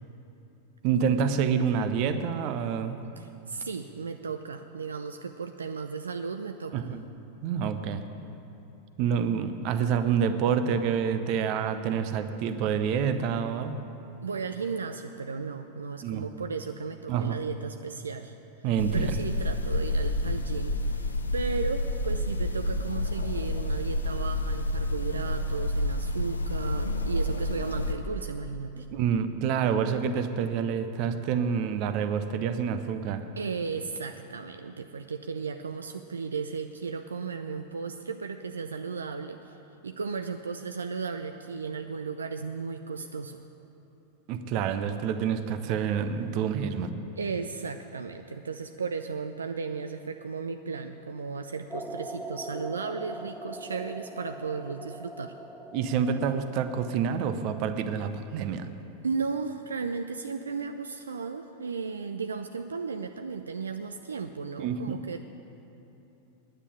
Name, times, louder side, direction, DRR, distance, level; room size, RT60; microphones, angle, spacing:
voice 1, 0.8-3.0 6.7-7.0 7.4-8.0 9.0-13.8 16.0-16.2 17.1-17.4 18.6-19.3 28.9-33.3 44.3-46.9 55.7-58.7 64.6-65.0, right 7 dB, 45° right, 10 dB, 0.7 m, -27 dB
voice 2, 3.2-6.9 14.2-18.4 18.9-28.9 33.4-43.4 47.1-55.4 59.0-65.2, right 5 dB, 70° right, 7 dB, 0.4 m, -35 dB
sound 1, 18.8-27.9, left 1 dB, 75° left, 0.7 m, -29 dB
sound 2, 51.7-57.7, right 1 dB, 5° right, 0.5 m, -42 dB
9.9 x 8.8 x 8.8 m, 2.9 s
figure-of-eight pair, 90°, 0 cm